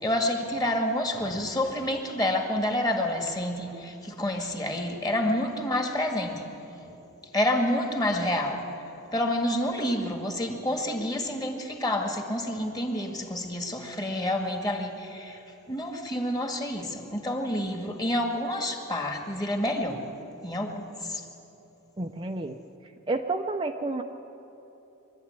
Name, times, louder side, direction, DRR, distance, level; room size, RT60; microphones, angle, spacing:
voice 1, 0.0-6.5 7.3-8.6 9.1-15.4 15.7-20.0 20.4-20.8 21.1-21.2, left 1 dB, 20° left, 3 dB, 2.0 m, -28 dB
voice 2, 22.0-22.6 23.1-24.0, right 2 dB, 25° right, 4 dB, 0.6 m, -30 dB
23.0 x 12.5 x 9.6 m, 2.9 s
head